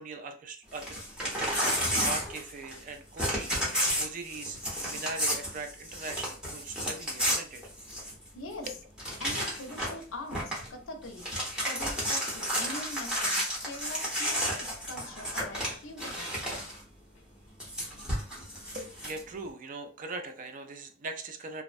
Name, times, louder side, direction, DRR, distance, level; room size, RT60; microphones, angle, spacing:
voice 1, 0.0-4.6 4.8-7.6 8.7-8.8 18.7-21.6, right 3 dB, 40° right, 7 dB, 0.4 m, -41 dB
Crumpling crinkling / Tearing, 0.7-2.9 3.2-8.3 8.6-8.7 9.0-10.0 10.3-10.7 11.0-16.8 17.6-19.2, equal, 5° right, 0.8 m, -32 dB
voice 2, 8.3-8.7 9.2-11.3 11.6-16.4, left 2 dB, 70° left, 5 dB, 0.5 m, -43 dB
2.4 x 2.1 x 2.4 m, 0.38 s
head